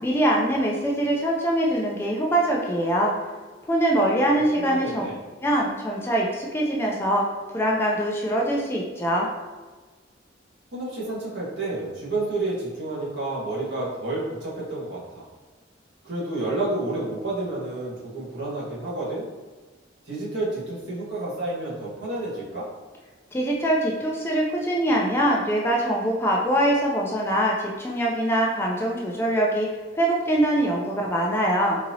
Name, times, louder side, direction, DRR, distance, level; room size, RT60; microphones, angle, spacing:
voice 1, 0.0-3.1 3.7-5.0 5.4-7.2 7.5-9.3 23.3-29.7 29.9-31.8, right 1 dB, 15° left, -2 dB, 0.4 m, -23 dB
voice 2, 4.5-5.2 10.7-15.2 16.0-19.3 20.0-22.7, right 2 dB, 70° right, -7 dB, 1.4 m, -30 dB
4.0 x 2.8 x 2.7 m, 1.3 s
head